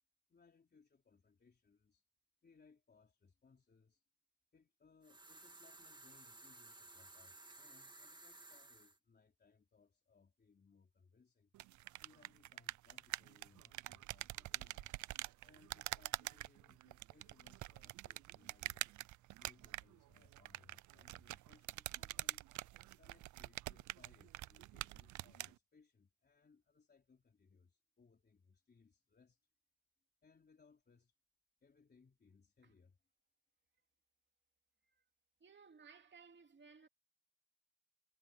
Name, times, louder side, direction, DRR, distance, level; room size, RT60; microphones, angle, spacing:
voice 1, 0.3-2.1 2.4-4.0 4.5-11.5 12.0-14.9 15.4-18.9 19.4-22.4 22.9-29.5 30.2-31.2 31.6-33.0, left 5 dB, 35° left, 3.9 m, -69 dB
sound 1, 5.0-9.0, right 2 dB, 15° right, 1.9 m, -57 dB
sound 2, 11.5-25.5, right 16 dB, 75° right, 0.6 m, -46 dB
voice 2, 35.4-36.9, right 5 dB, 35° right, 2.9 m, -60 dB
cardioid pair, 90°, 30 cm